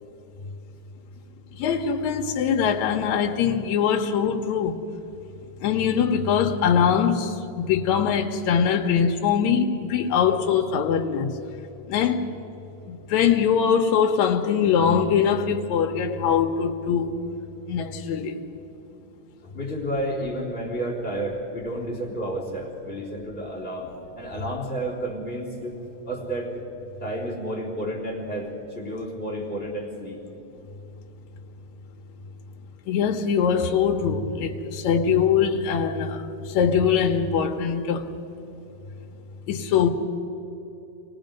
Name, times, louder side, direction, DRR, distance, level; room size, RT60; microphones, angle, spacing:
voice 1, 1.5-4.8 5.6-11.4 11.9-12.3 12.9-17.2 17.7-18.4 32.9-38.1 39.5-39.9, left 7 dB, 75° left, 2.2 m, -22 dB
voice 2, 19.4-25.8 26.0-26.6 27.0-30.2, right 1 dB, 20° left, 3.7 m, -31 dB
27.0 x 19.0 x 5.2 m
omnidirectional pair, 3.3 m